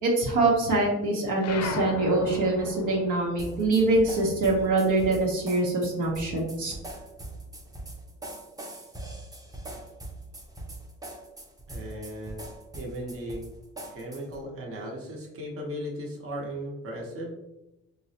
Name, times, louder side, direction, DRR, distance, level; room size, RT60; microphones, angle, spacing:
voice 1, 0.0-6.7, right 2 dB, 80° right, -2 dB, 0.9 m, -24 dB
sound 1, 1.4-6.3 6.6-8.0, left 5 dB, 60° left, 0.5 m, -39 dB
sound 2, 3.4-14.4, right 2 dB, 10° right, 0.5 m, -41 dB
voice 2, 11.7-12.4 12.7-13.4 13.9-17.4, equal, 50° right, -2 dB, 0.9 m, -36 dB
3.9 x 2.0 x 2.7 m, 0.92 s
cardioid pair, 90°, 30 cm